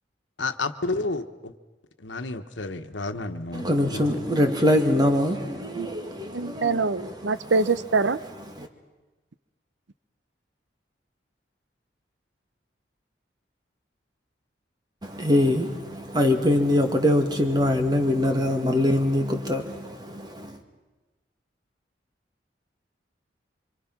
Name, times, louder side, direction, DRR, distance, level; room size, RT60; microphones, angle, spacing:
voice 1, 0.4-1.5 2.0-4.2, left 3 dB, 90° left, 1.3 m, -31 dB
voice 2, 3.5-7.1 8.6-8.7 15.0-20.6, left 1 dB, 25° right, 2.1 m, -23 dB
voice 3, 6.3-8.2, right 4 dB, 80° right, 0.8 m, -24 dB
27.0 x 25.5 x 6.0 m
head